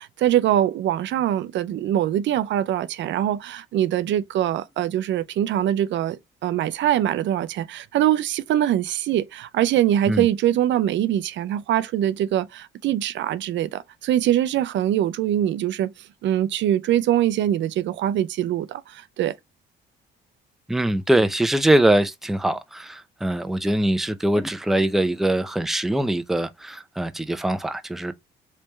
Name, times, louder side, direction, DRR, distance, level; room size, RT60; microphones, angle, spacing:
voice 1, 0.0-15.9 16.2-19.3, right 12 dB, 70° right, 0.4 m, -23 dB
voice 2, 20.7-28.1, right 1 dB, ahead, 0.4 m, -22 dB
3.3 x 3.2 x 3.1 m
cardioid pair, 90°, 20 cm